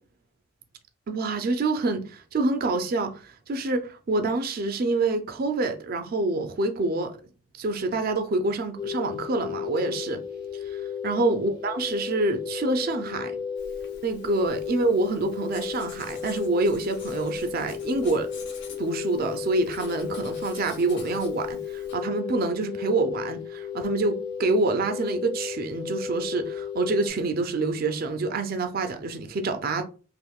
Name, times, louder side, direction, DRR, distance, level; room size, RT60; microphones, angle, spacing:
voice 1, 1.1-7.2 7.6-10.2 10.7-13.4 14.0-18.3 18.8-29.8, right 2 dB, 50° right, 0.4 m, -27 dB
sound 1, 8.8-27.1, left 7 dB, 25° left, 0.8 m, -34 dB
Writing, 13.6-21.9, left 4 dB, 60° left, 0.8 m, -48 dB
3.5 x 2.6 x 2.3 m
head